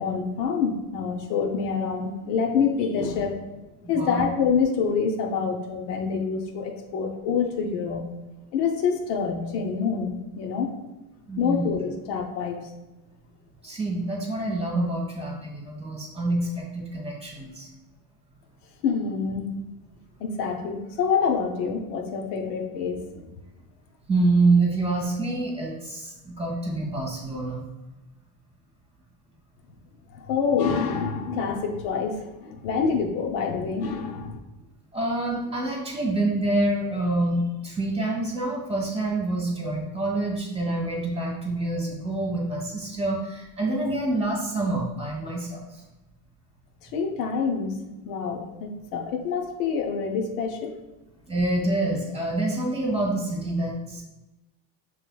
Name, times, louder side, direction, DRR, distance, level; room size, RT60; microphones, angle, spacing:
voice 1, 0.0-3.4 3.9-8.0 8.5-10.7 11.4-12.6 18.8-19.5 20.2-23.3 30.1-34.4 46.8-47.8 48.1-50.7, left 6 dB, 85° left, 3 dB, 0.8 m, -26 dB
voice 2, 3.8-4.2 11.3-11.6 13.6-17.7 24.1-27.6 34.9-45.8 51.3-54.0, right 2 dB, 15° right, -2 dB, 1.3 m, -26 dB
5.7 x 3.2 x 2.3 m, 1.0 s
supercardioid pair, 95°, 46 cm